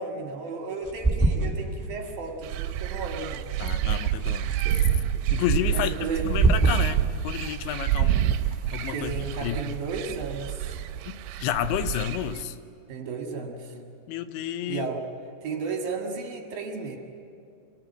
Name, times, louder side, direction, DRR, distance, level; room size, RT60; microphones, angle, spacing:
voice 1, 0.0-3.5 5.7-6.3 8.9-10.8 12.9-13.7 14.7-15.1 15.4-17.0, right 4 dB, 60° right, 2 dB, 3.3 m, -34 dB
sound 1, 0.8-11.1, right 2 dB, 10° right, 0.8 m, -31 dB
sound 2, 2.4-12.4, right 11 dB, 80° right, 2.9 m, -28 dB
voice 2, 3.6-4.6 5.3-8.3 8.7-9.6 11.1-12.6 14.1-14.9, left 11 dB, 85° left, 11 dB, 3.1 m, -31 dB
25.5 x 18.0 x 9.1 m, 2.4 s
omnidirectional pair, 5.2 m